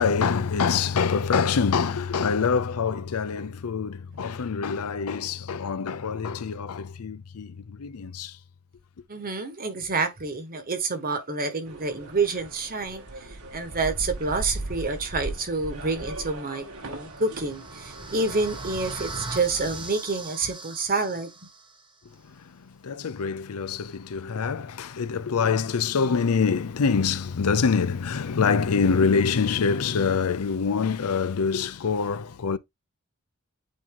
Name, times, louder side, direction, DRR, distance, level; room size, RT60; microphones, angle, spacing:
voice 1, 0.0-7.5 7.8-8.3 22.8-32.6, left 5 dB, 80° left, 0.5 m, -25 dB
voice 2, 9.1-21.5, right 3 dB, 40° right, 1.3 m, -28 dB
sound 1, 11.7-19.9, right 2 dB, 85° right, 1.7 m, -38 dB
sound 2, 16.8-21.9, right 3 dB, 20° right, 1.3 m, -40 dB
8.8 x 2.9 x 3.7 m
head